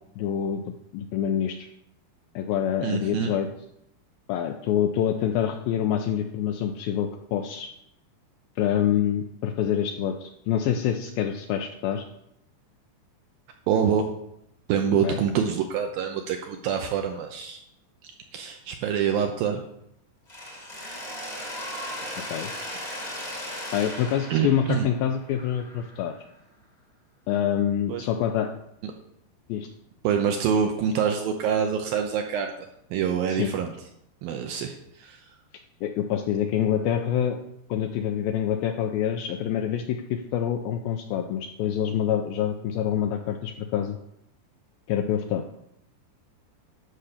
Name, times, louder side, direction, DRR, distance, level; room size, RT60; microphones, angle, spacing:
voice 1, 0.2-0.6 0.9-1.7 2.4-3.5 4.3-7.7 8.6-12.1 15.0-15.2 22.3-22.5 23.7-26.1 27.3-28.5 29.5-29.7 33.4-33.5 35.8-37.4 37.7-44.0 44.9-45.4, left 9 dB, 90° left, 5 dB, 2.1 m, -26 dB
voice 2, 2.8-3.3 13.7-14.1 14.7-17.6 18.0-19.6 22.0-22.3 24.3-24.9 27.9-28.1 28.8-28.9 30.0-32.5 32.9-33.7 34.2-35.2, right 7 dB, 75° right, 4 dB, 2.2 m, -26 dB
Mechanisms, 20.3-26.2, left 1 dB, 30° left, 0.7 m, -37 dB
12.0 x 5.6 x 6.7 m, 0.75 s
omnidirectional pair, 4.9 m